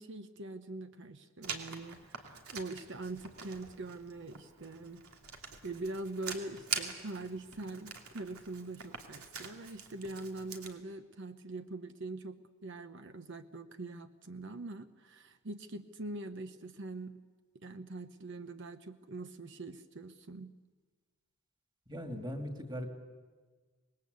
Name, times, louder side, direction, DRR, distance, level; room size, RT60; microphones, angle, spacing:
voice 1, 0.0-5.0 5.6-17.2 17.5-20.5, right 2 dB, 55° right, 9 dB, 0.9 m, -43 dB
Writing, 1.4-10.7, right 6 dB, 90° right, 2.8 m, -44 dB
voice 2, 21.9-22.9, equal, 20° right, 4 dB, 2.4 m, -39 dB
26.0 x 21.0 x 8.2 m, 1.4 s
head